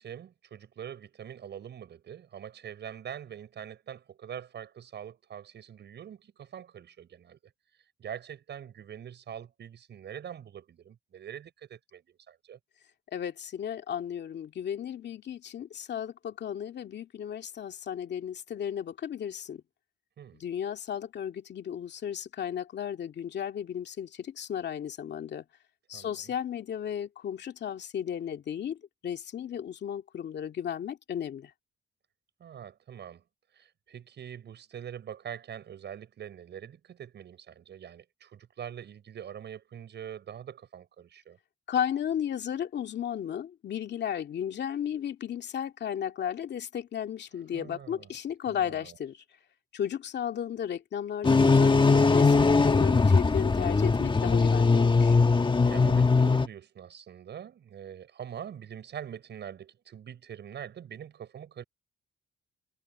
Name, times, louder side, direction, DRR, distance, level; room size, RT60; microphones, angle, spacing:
voice 1, 0.0-7.4 8.0-12.6 20.2-20.4 25.9-26.3 32.4-33.2 33.5-41.4 47.5-48.1 48.4-49.0 55.6-61.6, right 9 dB, 60° right, 6.6 m, -44 dB
voice 2, 13.1-19.6 20.3-25.4 25.9-28.8 29.0-31.5 41.7-49.2 49.7-55.2, left 9 dB, 60° left, 2.3 m, -34 dB
sound 1, 51.2-56.5, left 4 dB, 25° left, 1.4 m, -21 dB
cardioid pair, 90°, 20 cm